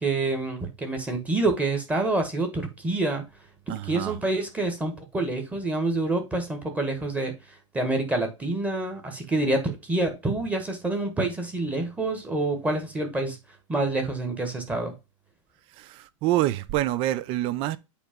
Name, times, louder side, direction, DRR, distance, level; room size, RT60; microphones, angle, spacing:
voice 1, 0.0-3.2 3.8-7.3 7.7-13.4 13.7-14.9, right 2 dB, 10° right, 1.4 m, -27 dB
voice 2, 3.7-4.1 15.8-17.8, right 15 dB, 30° right, 0.6 m, -26 dB
8.5 x 3.1 x 5.1 m
supercardioid pair, 150°, 17 cm